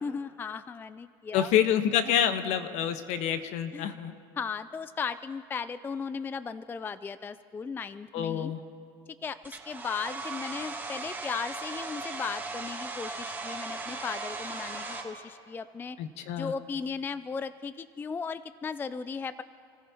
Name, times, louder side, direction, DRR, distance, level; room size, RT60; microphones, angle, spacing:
voice 1, 0.0-1.6 3.7-3.9 4.4-8.5 9.2-16.0 16.4-19.4, left 5 dB, 15° left, 14 dB, 0.3 m, -36 dB
voice 2, 1.3-4.1 8.1-8.6 16.0-16.5, left 9 dB, 60° left, 9 dB, 1.2 m, -27 dB
Domestic sounds home sounds, 9.4-15.0, right 3 dB, 15° right, 2.6 m, -37 dB
29.0 x 15.0 x 2.9 m, 2.4 s
supercardioid pair, 110°, 13 cm